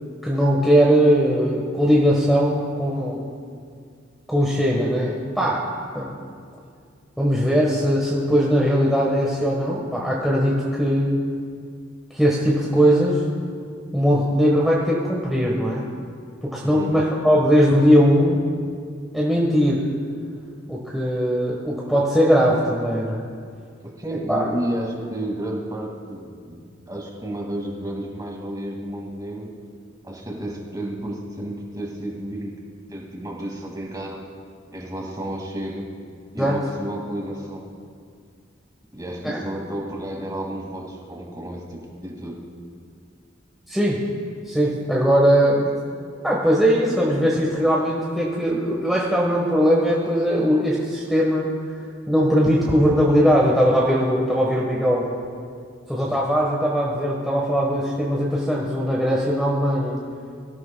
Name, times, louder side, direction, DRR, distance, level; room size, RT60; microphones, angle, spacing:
voice 1, 0.2-3.2 4.3-5.7 5.9-6.1 7.2-11.2 12.1-13.2 13.9-15.9 16.4-18.4 19.1-19.9 20.7-23.2 24.3-24.4 36.4-36.6 39.2-39.4 43.7-44.0 44.5-45.7 46.2-51.5 52.1-55.1 55.9-60.0, equal, ahead, -5 dB, 1.3 m, -20 dB
voice 2, 16.6-17.0 23.8-29.5 30.0-32.5 32.9-34.2 34.7-35.9 36.3-37.7 38.9-42.4, right 1 dB, 20° right, -1 dB, 2.2 m, -31 dB
23.5 x 13.5 x 2.3 m, 2.2 s
head